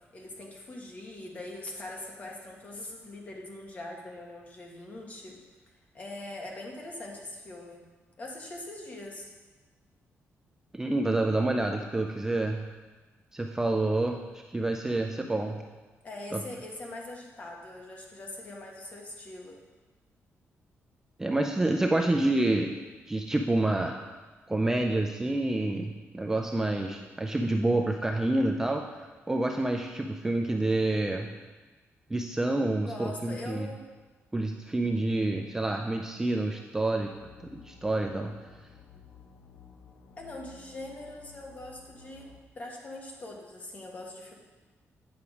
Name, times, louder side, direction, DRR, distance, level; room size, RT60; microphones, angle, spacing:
voice 1, 0.1-5.4 5.9-7.9 8.2-9.3 16.0-19.6 32.8-33.8 40.2-42.3 42.5-44.3, left 2 dB, 30° left, 0 dB, 1.4 m, -42 dB
voice 2, 10.7-12.6 13.3-14.2 14.5-15.6 16.3-16.4 21.2-22.8 23.1-24.0 24.5-31.3 32.1-33.7 34.3-37.1 37.4-38.3, right 2 dB, 10° right, 3 dB, 0.4 m, -28 dB
sound 1, 37.0-42.4, left 5 dB, 60° left, 0.9 m, -54 dB
8.7 x 5.8 x 4.8 m, 1.3 s
wide cardioid pair, 160°, 5 cm